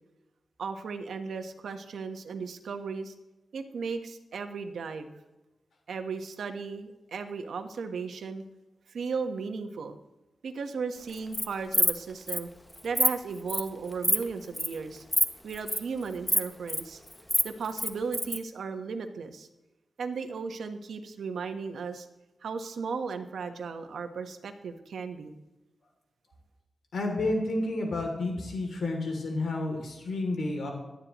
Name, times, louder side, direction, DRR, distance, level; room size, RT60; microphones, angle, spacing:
voice 1, 0.6-3.1 3.5-5.2 5.9-8.4 8.9-10.0 10.4-12.5 12.8-15.0 15.4-17.0 17.4-19.5 20.0-22.1 22.4-25.3, right 5 dB, 85° right, 7 dB, 1.2 m, -36 dB
Insect, 11.1-11.4 11.7-12.0 12.3-12.4 12.7-13.1 13.5-13.7 14.0-14.2 14.5-14.7 15.1-15.2 15.5-15.8 16.3-16.8 17.1-18.4, left 1 dB, 10° left, 0.9 m, -25 dB
voice 2, 26.9-30.7, left 2 dB, 70° left, 2 dB, 2.9 m, -30 dB
18.5 x 12.0 x 3.1 m, 1.0 s
wide cardioid pair, 115°, 0 cm